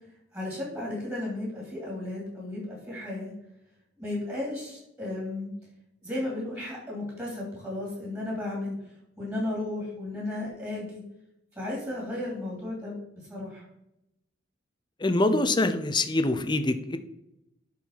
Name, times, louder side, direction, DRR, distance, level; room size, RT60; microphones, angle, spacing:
voice 1, 0.3-3.3 4.0-5.5 6.0-8.7 9.2-11.0 11.5-13.6, left 1 dB, 15° right, -4 dB, 2.9 m, -34 dB
voice 2, 15.0-17.0, left 2 dB, 25° left, 9 dB, 0.6 m, -24 dB
11.0 x 4.2 x 4.7 m, 0.85 s
head